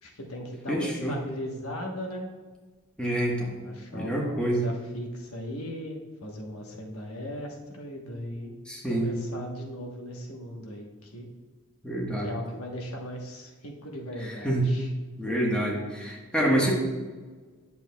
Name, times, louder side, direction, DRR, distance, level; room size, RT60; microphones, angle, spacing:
voice 1, 0.0-2.3 3.6-8.6 8.9-11.3 12.2-14.9, equal, 85° left, 1 dB, 1.2 m, -38 dB
voice 2, 0.7-1.2 3.0-3.5 3.9-4.6 8.7-9.1 11.8-12.3 14.2-14.6 15.2-16.7, right 1 dB, 5° left, -2 dB, 1.2 m, -27 dB
10.0 x 7.0 x 2.3 m, 1.4 s
head